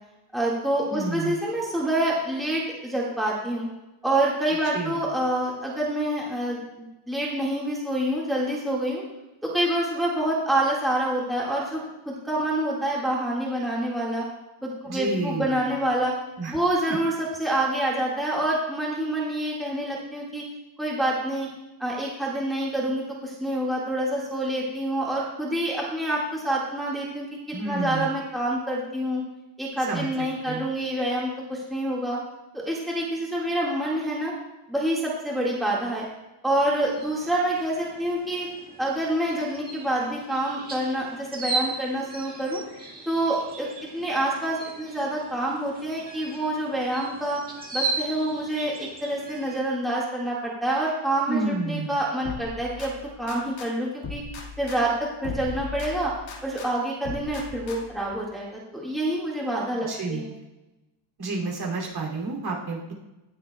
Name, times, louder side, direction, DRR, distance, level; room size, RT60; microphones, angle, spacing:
voice 1, 0.3-3.7 4.0-9.0 9.4-14.2 14.6-16.1 16.5-20.4 20.8-21.5 21.8-27.3 27.6-29.2 29.6-32.2 32.5-34.3 34.7-36.1 36.4-38.5 38.8-42.6 43.1-43.7 43.9-47.4 47.7-52.9 53.2-54.2 54.6-56.1 56.4-60.3, right 1 dB, ahead, -5 dB, 1.7 m, -27 dB
voice 2, 0.9-1.4 4.7-5.0 14.8-15.7 16.4-16.5 16.9-17.0 27.5-28.1 29.8-30.1 30.4-30.7 51.3-51.9 59.9-60.4 61.2-62.9, right 3 dB, 50° right, -1 dB, 2.7 m, -30 dB
sound 1, 36.5-49.6, right 3 dB, 20° right, 1.7 m, -37 dB
sound 2, 52.2-53.7 54.0-56.7 57.0-58.1, left 4 dB, 65° left, 1.8 m, -38 dB
18.5 x 7.5 x 2.2 m, 1.0 s
cardioid pair, 155°, 50 cm